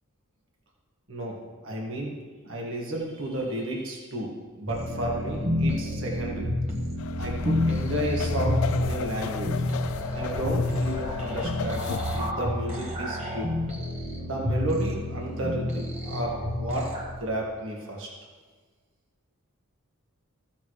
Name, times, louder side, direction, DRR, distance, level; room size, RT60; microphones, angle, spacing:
voice 1, 1.6-2.2 2.4-6.5 7.2-9.8 10.1-11.8 12.1-13.5 14.2-16.9 17.2-18.1, right 1 dB, 60° right, -2 dB, 1.8 m, -32 dB
sound 1, 4.6-17.1, left 1 dB, 30° right, 1.4 m, -29 dB
sound 2, 7.0-12.3, left 7 dB, 70° left, 0.3 m, -35 dB
15.0 x 7.1 x 3.2 m, 1.5 s
head